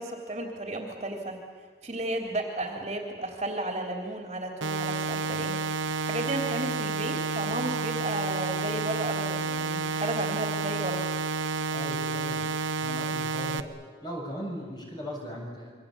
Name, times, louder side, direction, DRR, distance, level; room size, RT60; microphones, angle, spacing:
voice 1, 0.0-5.6 6.0-11.0, right 2 dB, 30° right, 2 dB, 3.4 m, -33 dB
sound 1, 4.6-13.6, right 4 dB, 85° right, 1.2 m, -30 dB
voice 2, 11.7-12.5 12.8-13.7 14.0-15.7, equal, 25° left, 0 dB, 7.1 m, -38 dB
28.0 x 24.0 x 8.7 m, 1.5 s
head